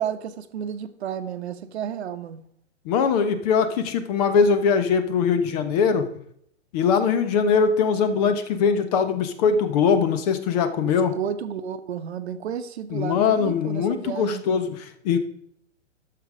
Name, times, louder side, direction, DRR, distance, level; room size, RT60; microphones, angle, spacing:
voice 1, 0.0-2.4 10.8-14.4, right 8 dB, 60° right, 1.1 m, -32 dB
voice 2, 2.9-6.0 6.7-11.1 12.9-15.2, left 6 dB, 35° left, 1.1 m, -21 dB
12.0 x 6.7 x 5.0 m
hypercardioid pair, 140°, 36 cm